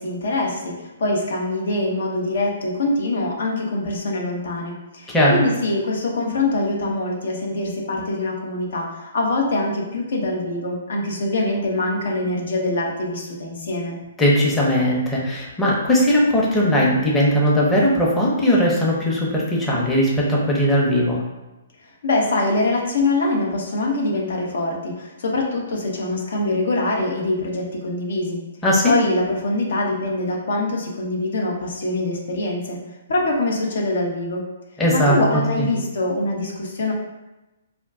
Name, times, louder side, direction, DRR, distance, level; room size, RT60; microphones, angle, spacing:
voice 1, 0.0-14.0 22.0-28.4 28.9-32.8 33.1-34.4 34.9-36.9, left 2 dB, 65° left, -1 dB, 0.6 m, -24 dB
voice 2, 14.2-21.2 28.6-28.9 34.8-35.2 35.6-35.7, equal, 10° left, -5 dB, 0.6 m, -18 dB
2.3 x 2.2 x 3.5 m, 1.0 s
hypercardioid pair, 135°, 0 cm